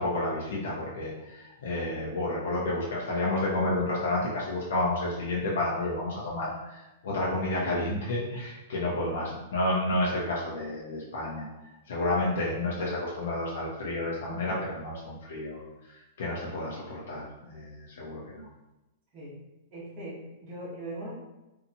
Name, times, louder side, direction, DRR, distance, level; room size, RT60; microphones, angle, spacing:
voice 1, 0.0-11.5 11.9-18.5, left 2 dB, 75° left, -5 dB, 0.6 m, -30 dB
voice 2, 19.7-21.1, right 1 dB, 25° right, -10 dB, 1.0 m, -40 dB
2.7 x 2.3 x 2.7 m, 1.0 s
supercardioid pair, 175°, 0 cm